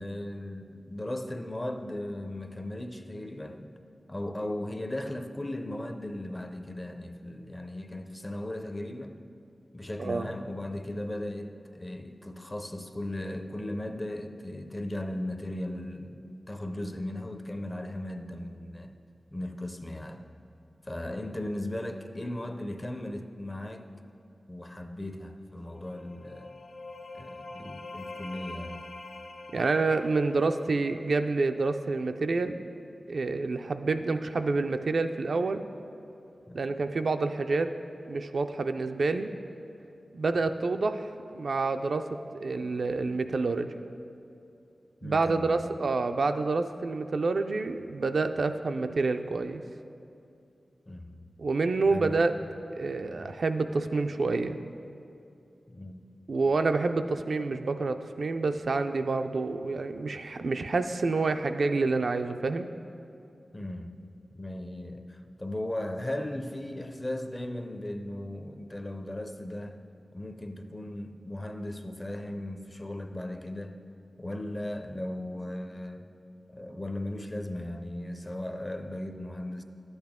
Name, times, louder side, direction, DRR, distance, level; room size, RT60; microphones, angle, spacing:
voice 1, 0.0-3.7 4.1-9.1 9.7-18.9 19.3-20.3 20.8-23.9 24.5-26.5 27.1-28.8 36.5-36.6 40.4-40.5 45.0-45.6 50.9-51.3 51.8-52.3 53.1-53.3 55.7-56.1 63.5-64.0 64.3-69.8 70.1-73.8 74.2-76.1 76.5-79.6, left 1 dB, 25° left, 7 dB, 0.5 m, -37 dB
sound 1, 25.7-31.4, left 2 dB, 75° left, 0.6 m, -45 dB
voice 2, 29.5-32.6 33.1-35.6 36.5-37.7 38.1-39.3 40.1-42.1 42.3-43.7 45.0-49.6 51.4-52.3 52.7-54.6 56.3-62.7, right 3 dB, 70° right, 7 dB, 0.3 m, -28 dB
11.0 x 8.0 x 3.6 m, 2.6 s
wide cardioid pair, 70°, 0 cm